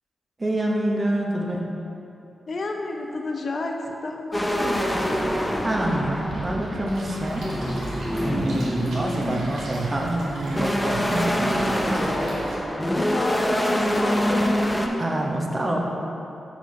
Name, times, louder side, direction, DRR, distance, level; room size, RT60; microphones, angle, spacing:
voice 1, 0.4-1.7 5.6-7.5 8.2-12.0 13.0-13.1 15.0-15.8, right 1 dB, 35° right, -1 dB, 0.9 m, -26 dB
voice 2, 2.5-4.9 8.8-9.5 12.9-14.7, left 2 dB, 60° left, 2 dB, 0.6 m, -30 dB
sound 1, 4.3-14.9, equal, 10° left, 0.6 m, -26 dB
Wind, 4.6-12.7, right 2 dB, 65° right, 0.5 m, -40 dB
sound 2, 6.9-12.6, right 1 dB, 90° right, 1.3 m, -40 dB
4.5 x 4.4 x 5.4 m, 2.8 s
cardioid pair, 50°, 0 cm